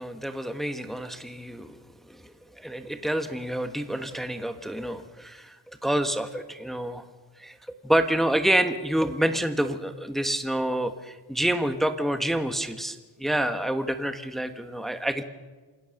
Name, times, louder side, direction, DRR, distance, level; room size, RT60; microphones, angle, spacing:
voice 1, 0.0-1.8 2.1-5.6 5.8-7.0 7.4-7.6 7.8-15.2, right 1 dB, ahead, 8 dB, 1.4 m, -28 dB
27.5 x 16.5 x 6.6 m, 1.3 s
cardioid pair, 95°, 45 cm